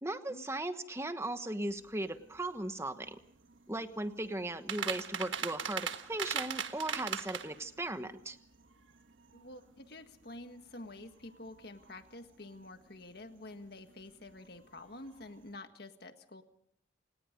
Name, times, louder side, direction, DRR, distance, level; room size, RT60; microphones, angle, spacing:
voice 1, 0.0-3.2 3.7-8.4, right 1 dB, 15° right, 9 dB, 1.2 m, -37 dB
sound 1, 1.7-15.6, right 7 dB, 85° right, 1.5 m, -43 dB
voice 2, 9.3-16.4, left 2 dB, 55° left, 7 dB, 1.7 m, -49 dB
29.0 x 18.5 x 5.3 m, 0.70 s
head